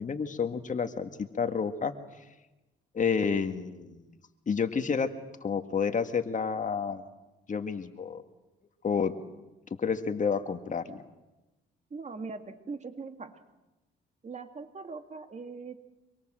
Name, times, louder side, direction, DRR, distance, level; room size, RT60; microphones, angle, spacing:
voice 1, 0.0-1.9 2.9-4.2 4.5-5.1 5.4-7.0 7.5-8.2 8.8-9.1 9.8-11.0, left 6 dB, 40° left, 7 dB, 1.9 m, -30 dB
voice 2, 11.9-13.4 14.2-15.8, right 4 dB, 35° right, 7 dB, 2.2 m, -41 dB
26.0 x 24.0 x 7.7 m, 1.0 s
cardioid pair, 90°, 20 cm